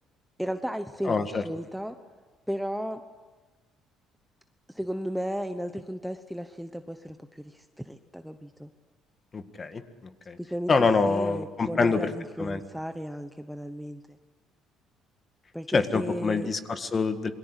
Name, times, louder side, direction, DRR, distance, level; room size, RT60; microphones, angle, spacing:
voice 1, 0.4-2.0 2.5-3.0 4.7-8.7 10.4-10.7 11.0-14.2 15.5-16.5, equal, ahead, 8 dB, 0.9 m, -34 dB
voice 2, 1.1-1.4 9.3-9.8 10.3-10.4 10.7-12.1 12.4-12.6 15.7-17.3, left 4 dB, 25° left, 9 dB, 1.7 m, -25 dB
27.5 x 22.5 x 8.3 m, 1.3 s
cardioid pair, 140°, 0 cm